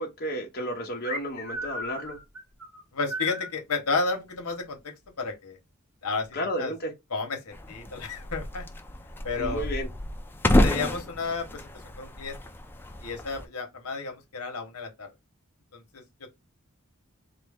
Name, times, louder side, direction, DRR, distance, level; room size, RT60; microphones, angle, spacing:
voice 1, 0.0-2.2 6.3-6.9 9.4-9.9, equal, 45° left, 0.9 m, -32 dB
sound 1, 1.0-3.5, equal, 90° right, 2.4 m, -35 dB
voice 2, 2.9-4.8 5.2-5.6 6.0-6.3 6.6-6.7 7.1-8.7 9.2-9.7 10.6-11.6 12.0-12.4 13.0-15.1 15.7-16.0, left 4 dB, 80° left, 1.0 m, -31 dB
sound 2, 7.5-13.5, left 1 dB, 10° left, 0.4 m, -29 dB
4.3 x 2.0 x 3.4 m
head